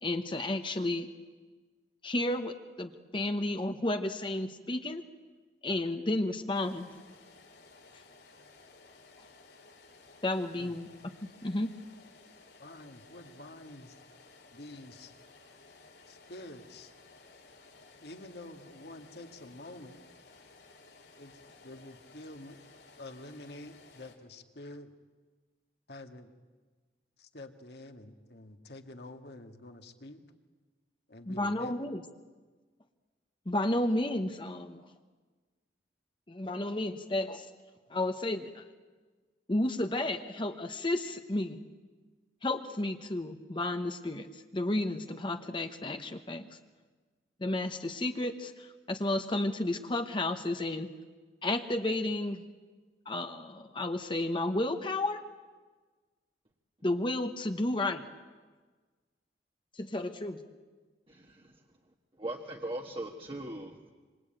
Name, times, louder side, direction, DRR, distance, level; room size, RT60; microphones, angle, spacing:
voice 1, 0.0-1.1 2.0-5.0 5.6-6.9 10.2-10.9 11.4-11.7 31.3-32.0 33.5-34.8 36.3-37.5 37.9-38.6 39.5-41.6 42.4-46.5 47.4-50.9 51.4-52.4 53.1-55.2 56.8-58.1 59.7-60.4, left 1 dB, 30° left, 6 dB, 1.1 m, -32 dB
sound 1, 6.5-24.1, left 3 dB, 80° left, 4.4 m, -57 dB
voice 2, 12.6-14.0 14.4-15.1 16.1-16.9 18.0-20.0 21.2-22.6 23.0-24.9 25.9-26.3 27.2-30.2 31.1-31.8, left 2 dB, 65° left, 5 dB, 2.0 m, -48 dB
voice 3, 61.1-61.6 62.2-63.9, right 1 dB, 30° right, 1 dB, 1.5 m, -39 dB
26.0 x 25.0 x 9.1 m, 1.4 s
head